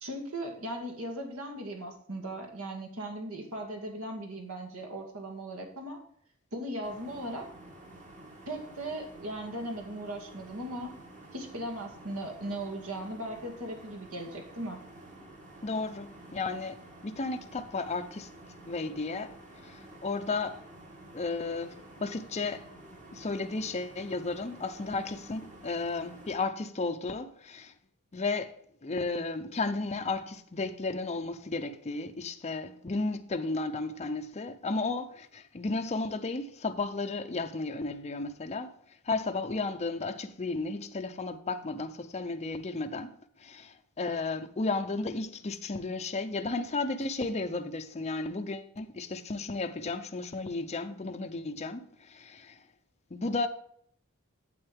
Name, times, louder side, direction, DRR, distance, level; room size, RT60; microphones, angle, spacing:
voice 1, 0.0-6.0 6.5-7.5 8.5-10.9 11.3-14.8, right 1 dB, 70° right, 2.3 m, -38 dB
sound 1, 6.8-26.4, right 1 dB, 35° right, 2.2 m, -50 dB
voice 2, 15.6-16.8 17.0-18.3 18.7-19.3 19.6-20.6 21.1-21.7 22.0-22.7 23.1-27.7 28.1-28.6 28.8-38.7 39.0-52.6 53.1-53.5, left 3 dB, 30° left, 0.6 m, -33 dB
8.9 x 8.0 x 3.5 m
head